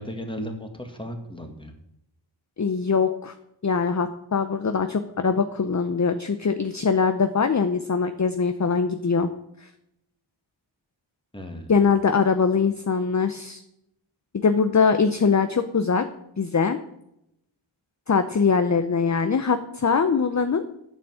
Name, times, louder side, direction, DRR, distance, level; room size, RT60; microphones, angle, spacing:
voice 1, 0.0-1.7 11.3-11.8, equal, 10° left, 4 dB, 1.8 m, -35 dB
voice 2, 2.6-3.3 3.6-9.3 9.6-9.7 11.7-13.6 14.3-16.0 16.4-16.8 18.1-20.6, left 5 dB, 35° left, 9 dB, 0.7 m, -22 dB
9.2 x 7.0 x 7.6 m, 0.80 s
wide cardioid pair, 80°, 48 cm